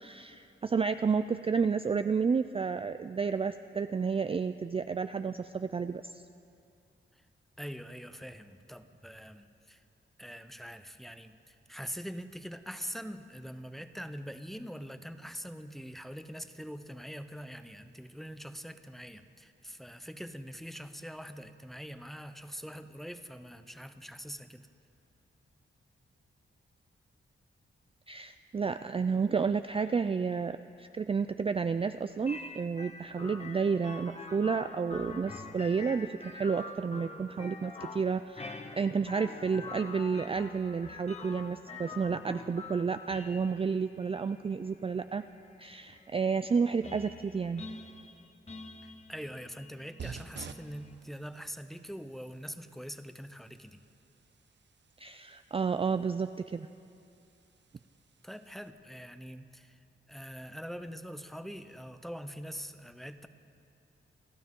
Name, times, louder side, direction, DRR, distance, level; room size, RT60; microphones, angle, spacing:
voice 1, 0.0-6.2 28.1-38.5 38.7-45.2 45.6-47.6 55.0-56.7, right 5 dB, 25° right, 10 dB, 0.4 m, -31 dB
voice 2, 7.6-9.8 10.2-24.7 48.8-53.8 58.2-59.8 60.1-63.3, equal, ahead, 9 dB, 0.8 m, -43 dB
sound 1, 32.3-50.9, left 3 dB, 30° left, 1.2 m, -46 dB
sound 2, 50.0-58.7, right 6 dB, 60° right, 0.7 m, -52 dB
28.5 x 13.0 x 3.7 m, 2.5 s
cardioid pair, 80°, 21 cm